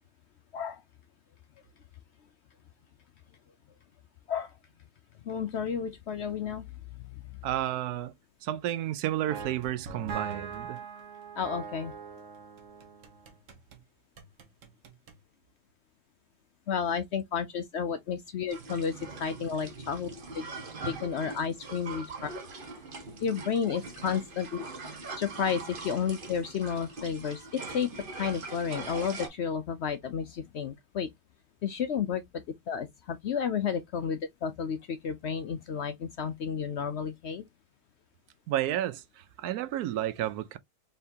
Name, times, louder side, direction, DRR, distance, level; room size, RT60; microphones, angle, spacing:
voice 1, 5.3-6.6 11.4-11.9 16.7-18.9 19.2-20.1 20.3-20.4 20.9-22.3 23.2-24.6 24.9-31.1 31.6-37.4, left 7 dB, 65° left, 0.7 m, -32 dB
voice 2, 7.4-8.1 8.4-10.9 38.5-40.6, right 13 dB, 85° right, 1.1 m, -31 dB
sound 1, 9.3-13.8 14.2-15.2, right 6 dB, 60° right, 1.2 m, -42 dB
sound 2, 18.5-29.3, right 3 dB, 40° right, 1.1 m, -42 dB
4.2 x 3.7 x 2.7 m
omnidirectional pair, 1.6 m